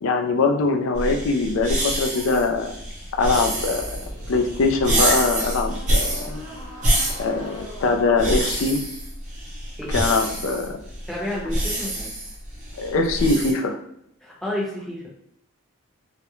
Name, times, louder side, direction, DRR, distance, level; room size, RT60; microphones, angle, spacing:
voice 1, 0.0-2.7 3.2-4.0 4.3-6.3 7.2-8.8 9.9-10.8 12.8-13.8, left 3 dB, 65° left, 4 dB, 0.4 m, -22 dB
sound 1, 0.9-13.5, right 1 dB, 35° right, 0.6 m, -27 dB
sound 2, 3.3-8.6, equal, 55° right, 1.0 m, -40 dB
voice 2, 11.1-12.1 14.2-15.1, left 1 dB, ahead, -6 dB, 0.7 m, -30 dB
2.3 x 2.1 x 2.9 m, 0.73 s
head